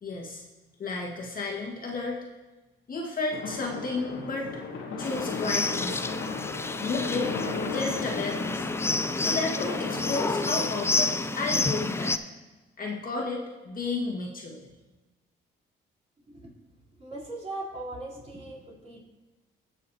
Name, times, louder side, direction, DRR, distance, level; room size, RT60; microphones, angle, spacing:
voice 1, 0.0-0.4 0.8-2.2 2.9-4.5 5.0-6.2 6.6-7.3 7.7-8.7 9.2-12.2 12.8-14.6, left 3 dB, 45° left, -1 dB, 1.7 m, -32 dB
sound 1, 3.3-11.2, left 4 dB, 75° left, 1.3 m, -36 dB
sound 2, 5.0-12.2, left 3 dB, 15° left, 0.4 m, -29 dB
voice 2, 17.0-19.0, right 2 dB, 35° right, -6 dB, 3.4 m, -39 dB
18.5 x 6.3 x 2.8 m, 1.1 s
cardioid pair, 90°, 20 cm